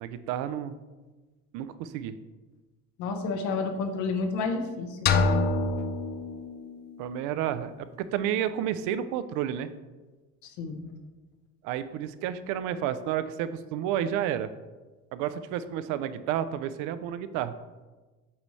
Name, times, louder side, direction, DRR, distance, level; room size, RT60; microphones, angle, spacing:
voice 1, 0.0-0.7 1.5-2.2 7.0-9.7 11.6-14.5 15.1-17.5, right 10 dB, 75° right, 13 dB, 0.5 m, -31 dB
voice 2, 3.0-5.2 10.4-10.8, left 4 dB, 70° left, 6 dB, 0.9 m, -30 dB
sound 1, 5.1-7.0, left 3 dB, 35° left, 0.4 m, -26 dB
8.5 x 4.0 x 3.2 m, 1.2 s
cardioid pair, 155°, 31 cm